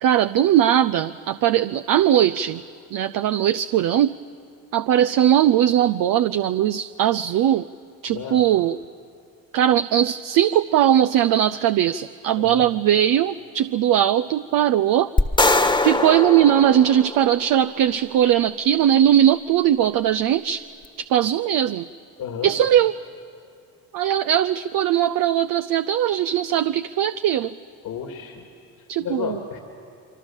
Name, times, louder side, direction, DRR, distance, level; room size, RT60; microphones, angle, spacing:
voice 1, 0.0-2.6 2.9-4.1 4.7-7.7 8.0-8.8 9.5-15.1 15.8-20.7 21.1-21.9 22.4-22.9 23.9-27.5 28.9-29.4, right 11 dB, 55° right, 10 dB, 0.6 m, -19 dB
voice 2, 8.1-8.4 12.4-12.7 22.2-22.5 27.8-28.4 29.0-29.6, left 7 dB, 65° left, 3 dB, 2.5 m, -32 dB
sound 1, 15.2-17.6, left 2 dB, 10° left, 1.4 m, -21 dB
26.0 x 24.0 x 7.3 m, 2.4 s
supercardioid pair, 70°, 39 cm